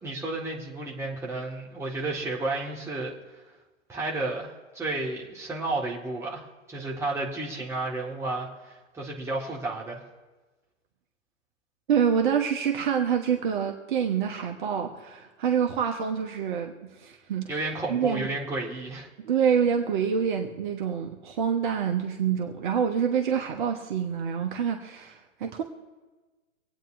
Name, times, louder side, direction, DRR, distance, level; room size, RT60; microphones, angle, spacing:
voice 1, 0.0-3.1 3.9-10.0 17.5-19.1, right 2 dB, 5° right, -3 dB, 1.8 m, -32 dB
voice 2, 11.9-17.5 17.9-18.3 19.2-25.6, right 7 dB, 40° right, 3 dB, 1.2 m, -26 dB
25.5 x 9.0 x 2.7 m, 1.2 s
figure-of-eight pair, 125°, 39 cm